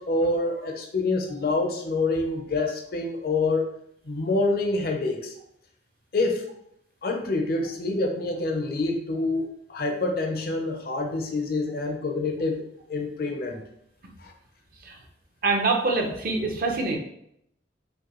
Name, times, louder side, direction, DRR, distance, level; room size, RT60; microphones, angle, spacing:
voice 1, 0.0-3.7 4.1-5.3 6.1-6.5 7.0-12.6 12.9-13.6 14.2-14.3, left 2 dB, 55° left, 2 dB, 0.5 m, -26 dB
voice 2, 15.4-17.0, right 3 dB, 50° right, 2 dB, 0.7 m, -25 dB
5.0 x 2.2 x 3.0 m, 0.74 s
head